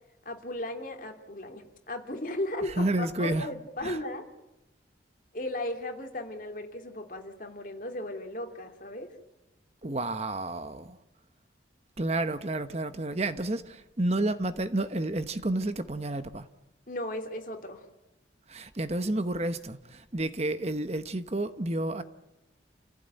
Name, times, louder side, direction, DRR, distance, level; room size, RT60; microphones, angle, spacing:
voice 1, 0.2-4.3 5.3-9.1 16.9-17.9, left 1 dB, 45° left, 2.9 m, -36 dB
voice 2, 2.6-3.5 3.8-4.0 9.8-11.0 12.0-16.5 18.5-22.0, right 2 dB, 35° right, 1.0 m, -30 dB
29.5 x 15.5 x 9.1 m
head